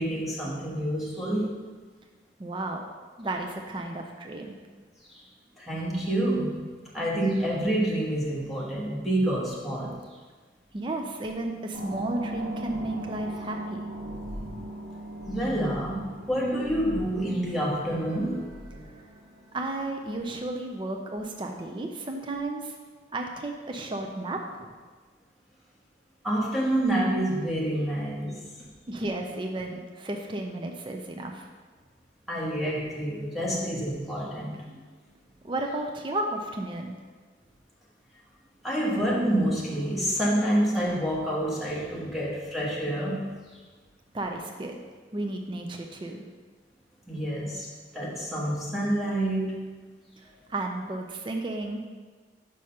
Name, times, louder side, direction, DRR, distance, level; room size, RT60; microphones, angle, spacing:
voice 1, 0.0-1.5 5.1-5.2 5.6-10.0 15.3-18.5 26.2-28.4 32.3-34.6 38.6-43.3 47.1-47.7 47.9-49.6, right 1 dB, ahead, -6 dB, 1.3 m, -28 dB
voice 2, 2.4-2.8 3.2-4.6 10.7-13.9 19.5-22.8 23.1-24.7 28.9-31.5 35.4-36.9 44.1-44.8 45.1-46.3 50.2-51.8, right 2 dB, 25° right, 3 dB, 0.4 m, -33 dB
sound 1, 11.7-20.5, right 1 dB, 75° right, 2.1 m, -39 dB
5.4 x 5.0 x 5.7 m, 1.4 s
head